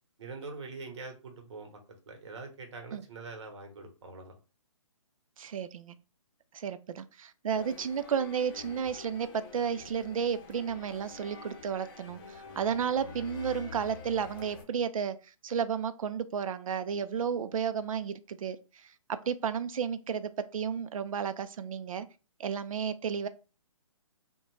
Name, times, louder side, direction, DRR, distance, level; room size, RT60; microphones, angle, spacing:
voice 1, 0.2-1.8 2.1-4.4, right 3 dB, 55° right, 0.9 m, -44 dB
voice 2, 5.4-6.0 6.5-15.2 15.4-18.6 19.1-22.1 22.4-23.3, right 7 dB, 75° right, 0.4 m, -32 dB
sound 1, 7.5-14.6, left 4 dB, 40° left, 0.7 m, -47 dB
2.4 x 2.1 x 3.0 m
hypercardioid pair, 150°, 18 cm